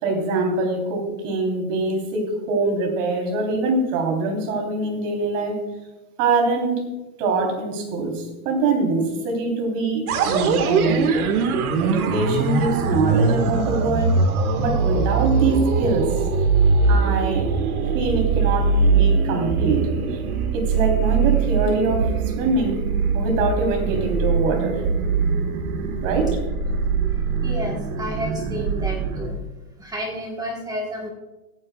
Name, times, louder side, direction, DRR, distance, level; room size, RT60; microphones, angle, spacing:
voice 1, 0.0-5.6 6.2-6.9 7.2-11.1 11.8-14.2 14.6-16.2 16.9-17.5 17.9-20.2 20.5-22.9 23.1-24.8 26.0-26.4, right 3 dB, 55° right, 2 dB, 3.8 m, -23 dB
sound 1, 10.1-29.3, right 5 dB, 70° right, 1.8 m, -22 dB
voice 2, 27.4-29.4 29.8-31.1, equal, 10° right, -1 dB, 1.4 m, -31 dB
21.5 x 9.8 x 2.4 m, 1.1 s
supercardioid pair, 150°, 45 cm